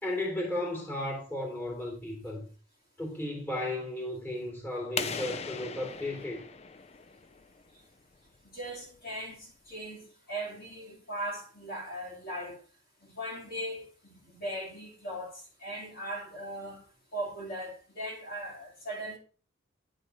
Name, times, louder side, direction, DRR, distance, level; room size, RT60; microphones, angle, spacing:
voice 1, 0.0-2.4 3.0-6.4, left 1 dB, 10° left, 2.7 m, -34 dB
sound 1, 5.0-7.6, left 6 dB, 30° left, 0.4 m, -38 dB
voice 2, 8.4-12.6 13.0-16.8 17.1-19.2, right 1 dB, 45° left, 2.4 m, -39 dB
9.4 x 4.1 x 4.5 m
head